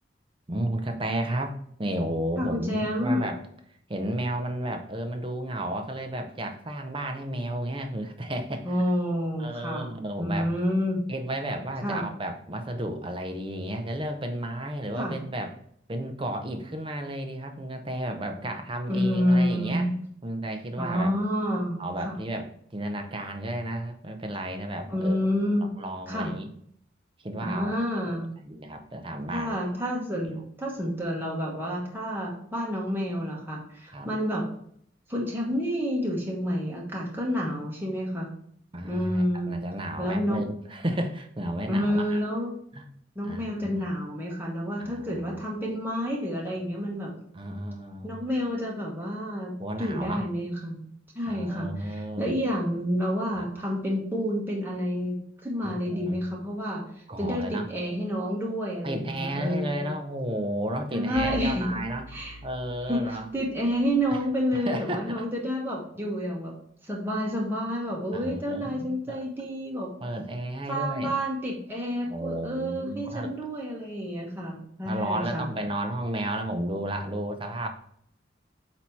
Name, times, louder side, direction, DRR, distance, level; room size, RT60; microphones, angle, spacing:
voice 1, 0.5-3.4 3.9-8.7 9.4-10.5 11.1-15.5 15.9-19.9 20.2-21.1 21.8-25.3 25.8-26.5 27.2-27.7 28.1-29.5 30.2-30.3 33.9-34.1 38.7-42.2 42.8-42.9 43.2-43.8 44.8-45.4 47.3-48.2 49.6-50.3 51.3-52.4 53.4-53.5 55.6-56.2 57.1-57.7 58.8-62.1 62.4-63.3 64.1-64.2 64.5-65.3 68.1-69.2 70.0-71.1 72.1-73.3 74.8-77.7, right 1 dB, 30° right, 6 dB, 0.7 m, -33 dB
voice 2, 2.4-3.3 8.6-9.9 10.2-11.0 11.8-12.0 15.0-15.2 18.9-20.0 20.8-22.1 24.9-25.7 26.1-26.3 27.4-28.3 29.3-34.4 35.1-38.3 38.8-39.6 40.0-40.4 41.7-42.5 43.1-47.1 48.0-50.8 51.1-56.8 57.2-59.9 60.9-61.7 62.1-62.4 62.9-66.5 66.8-69.9 70.7-75.5, equal, 10° right, -3 dB, 1.2 m, -29 dB
Bowed string instrument, 61.2-64.2, equal, 80° left, 1.2 m, -42 dB
8.3 x 2.9 x 4.5 m, 0.66 s
head